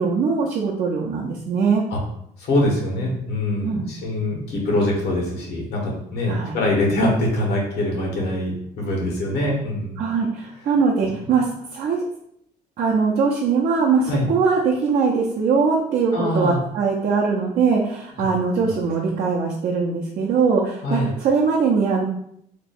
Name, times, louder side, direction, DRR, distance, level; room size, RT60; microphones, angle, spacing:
voice 1, 0.0-1.8 3.6-3.9 6.3-6.6 10.0-12.0 12.8-22.0, right 5 dB, 55° right, -3 dB, 0.6 m, -21 dB
voice 2, 2.4-10.0 14.1-14.3 16.1-16.6 18.6-18.7 20.8-21.1, left 1 dB, 75° left, -1 dB, 1.3 m, -23 dB
3.0 x 2.3 x 4.2 m, 0.72 s
cardioid pair, 110°, 17 cm